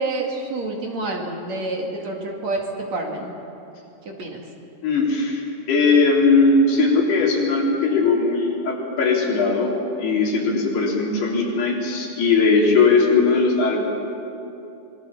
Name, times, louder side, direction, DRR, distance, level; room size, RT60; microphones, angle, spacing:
voice 1, 0.0-2.6 2.9-3.3 4.1-4.4, right 2 dB, 50° right, 0 dB, 3.2 m, -28 dB
voice 2, 4.8-13.9, left 4 dB, 90° left, -2 dB, 5.5 m, -19 dB
26.0 x 21.5 x 7.1 m, 2.8 s
omnidirectional pair, 4.5 m